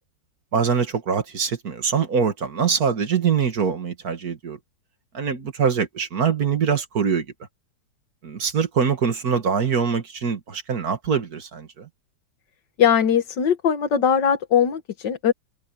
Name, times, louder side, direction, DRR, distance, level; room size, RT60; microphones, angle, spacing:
voice 1, 0.5-4.6 5.1-7.3 8.2-11.9, right 6 dB, 55° right, 2.2 m, -23 dB
voice 2, 12.8-15.3, left 8 dB, 70° left, 2.0 m, -20 dB
omnidirectional pair, 2.0 m